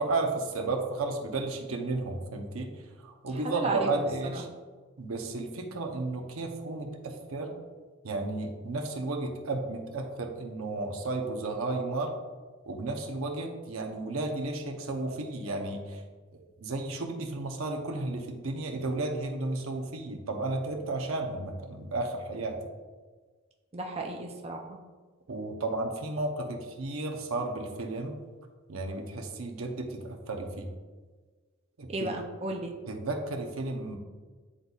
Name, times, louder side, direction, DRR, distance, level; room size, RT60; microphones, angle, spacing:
voice 1, 0.0-4.5 5.0-7.6 8.0-12.1 12.7-16.0 16.3-22.6 25.3-28.2 28.7-30.7 31.8-32.2 32.9-34.0, right 2 dB, 85° right, 2 dB, 0.8 m, -33 dB
voice 2, 3.4-4.0 4.3-4.4 23.7-24.8 31.9-32.7, right 2 dB, 30° right, 1 dB, 0.5 m, -33 dB
9.7 x 4.0 x 2.4 m, 1.4 s
head